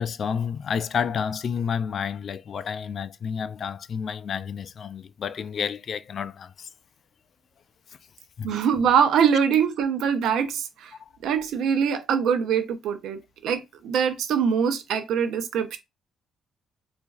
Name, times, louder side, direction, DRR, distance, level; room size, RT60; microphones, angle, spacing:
voice 1, 0.0-6.7 8.4-8.5, left 7 dB, 55° left, 0.3 m, -30 dB
voice 2, 8.4-10.9 11.2-15.8, right 7 dB, 80° right, 0.6 m, -23 dB
3.9 x 2.4 x 2.4 m
cardioid pair, 90°, 0 cm